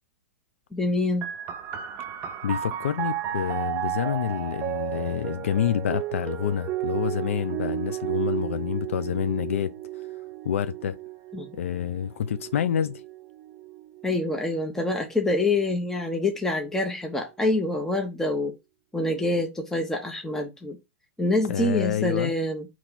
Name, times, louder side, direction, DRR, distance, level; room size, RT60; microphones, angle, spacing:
voice 1, 0.7-1.3 11.3-11.5 14.0-18.5 18.9-20.8 21.2-22.7, left 2 dB, 5° left, 0.7 m, -26 dB
sound 1, 1.2-14.4 15.3-16.1, right 13 dB, 30° right, 0.6 m, -33 dB
voice 2, 2.4-9.7 10.4-11.0 11.5-13.0 21.5-22.3, left 9 dB, 70° left, 0.3 m, -27 dB
4.3 x 3.0 x 3.9 m
hypercardioid pair, 115°, 7 cm